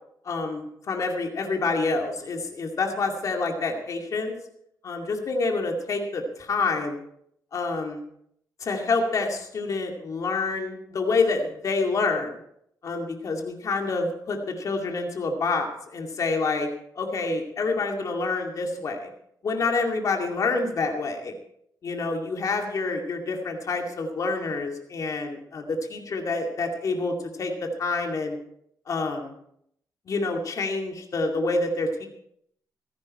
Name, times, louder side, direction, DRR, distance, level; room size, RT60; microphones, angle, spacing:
voice 1, 0.2-4.3 4.8-7.0 7.5-8.0 8.6-12.4 12.8-16.7 17.0-19.1 19.4-21.3 21.8-27.5 27.8-28.4 28.9-29.4 30.1-32.1, left 3 dB, 50° left, 2 dB, 2.4 m, -27 dB
15.5 x 15.0 x 4.3 m, 0.73 s
cardioid pair, 110°, 7 cm